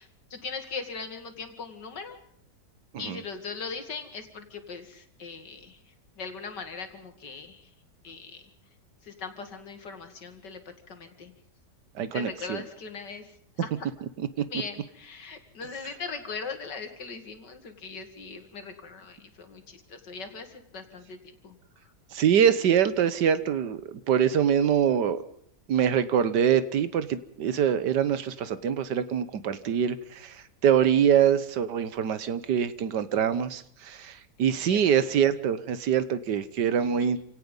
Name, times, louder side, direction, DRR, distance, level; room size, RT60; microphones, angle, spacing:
voice 1, 0.0-2.2 3.0-5.8 6.2-7.7 8.0-8.4 9.0-10.6 10.9-11.3 12.1-13.3 13.6-13.7 14.5-21.2 21.4-21.6 34.6-35.0 37.0-37.1, left 5 dB, 85° left, 7 dB, 2.8 m, -39 dB
voice 2, 11.9-12.6 14.2-14.4 22.1-25.2 25.7-37.2, right 8 dB, 80° right, 14 dB, 1.7 m, -24 dB
27.5 x 17.5 x 5.4 m, 0.64 s
omnidirectional pair, 1.8 m